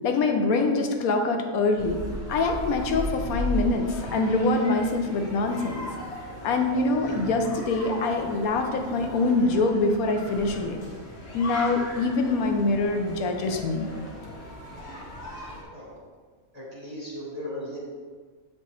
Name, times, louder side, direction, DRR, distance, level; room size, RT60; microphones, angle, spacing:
voice 1, 0.0-2.0 2.3-5.9 6.4-10.8 11.3-13.9, left 3 dB, 80° left, 4 dB, 1.2 m, -24 dB
sound 1, 1.8-15.6, left 1 dB, 50° left, 1.3 m, -37 dB
voice 2, 16.5-17.8, left 1 dB, 30° right, -5 dB, 0.9 m, -37 dB
7.3 x 4.3 x 3.1 m, 1.5 s
omnidirectional pair, 1.5 m